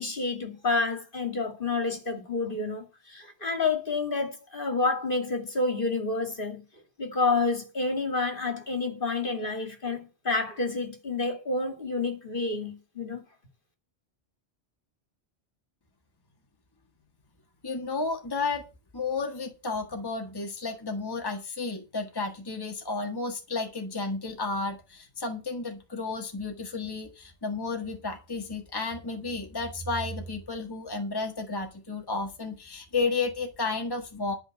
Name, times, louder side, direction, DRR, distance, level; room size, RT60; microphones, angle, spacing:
voice 1, 0.0-6.6 7.0-13.2, left 3 dB, 50° left, 2.6 m, -29 dB
voice 2, 17.6-18.6 18.9-34.3, left 3 dB, 20° left, 1.6 m, -32 dB
11.5 x 5.6 x 8.1 m
omnidirectional pair, 1.1 m